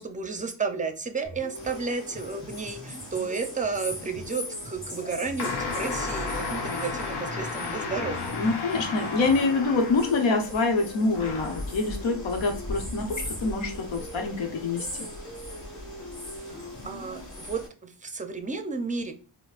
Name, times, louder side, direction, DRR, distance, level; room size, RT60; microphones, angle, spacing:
voice 1, 0.0-8.3 16.4-19.1, right 4 dB, 20° right, 7 dB, 0.5 m, -32 dB
sound 1, 1.2-17.2, equal, 25° left, 1.3 m, -43 dB
sound 2, 1.5-17.7, left 1 dB, 40° left, 1.5 m, -40 dB
sound 3, 5.4-10.4 11.1-11.7, left 4 dB, 60° left, 0.7 m, -33 dB
voice 2, 8.3-15.1, left 3 dB, 85° left, 4 dB, 0.9 m, -26 dB
4.4 x 2.0 x 2.4 m, 0.36 s
cardioid pair, 100°, 45 cm